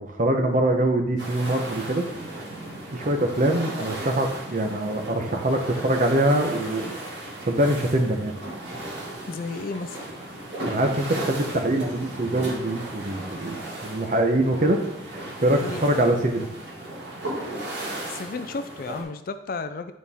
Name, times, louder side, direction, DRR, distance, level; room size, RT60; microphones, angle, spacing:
voice 1, 0.0-2.0 2.9-7.0 7.5-8.3 10.6-14.8 15.4-16.5, right 1 dB, 45° right, 4 dB, 0.8 m, -23 dB
sound 1, 1.2-19.0, right 1 dB, 75° right, 1.9 m, -36 dB
voice 2, 9.3-10.0 15.5-15.8 18.1-19.9, left 3 dB, 50° left, 10 dB, 0.4 m, -33 dB
9.5 x 4.2 x 3.6 m, 0.83 s
head